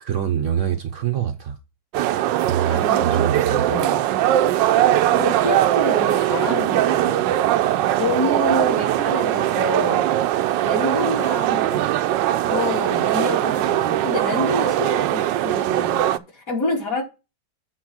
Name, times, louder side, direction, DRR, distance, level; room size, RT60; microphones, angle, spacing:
voice 1, 0.0-1.6 2.4-3.8, right 9 dB, 60° right, 0.8 m, -25 dB
sound 1, 1.9-16.2, right 13 dB, 75° right, 1.2 m, -20 dB
voice 2, 2.7-3.3 3.7-4.0 5.1-7.3 8.0-10.1 10.6-11.8 12.5-16.0 16.3-17.0, left 2 dB, 45° left, 2.8 m, -27 dB
8.0 x 4.1 x 6.2 m
omnidirectional pair, 2.1 m